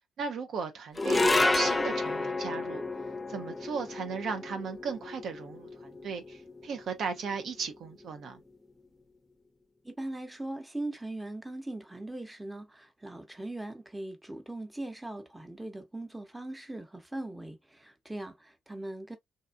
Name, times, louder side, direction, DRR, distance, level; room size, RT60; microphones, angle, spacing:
voice 1, 0.2-2.8 3.3-8.4, right 5 dB, 60° right, 0.4 m, -36 dB
sound 1, 1.0-7.4, left 2 dB, 25° left, 0.5 m, -30 dB
voice 2, 9.8-19.2, right 1 dB, 10° right, 0.8 m, -40 dB
2.6 x 2.3 x 2.2 m
hypercardioid pair, 45°, 0 cm